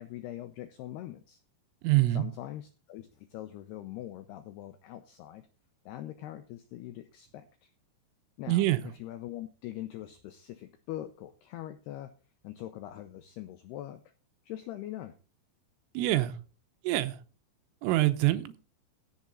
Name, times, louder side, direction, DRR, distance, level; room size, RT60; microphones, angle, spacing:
voice 1, 0.0-1.4 2.1-5.5 5.9-7.7 8.4-12.1 12.4-14.0 14.4-15.2, left 13 dB, 90° left, 2.3 m, -42 dB
voice 2, 1.8-2.3 8.5-8.8 16.0-16.3 16.9-17.2 17.8-18.6, right 16 dB, 85° right, 3.5 m, -25 dB
16.0 x 7.0 x 4.0 m
omnidirectional pair, 5.7 m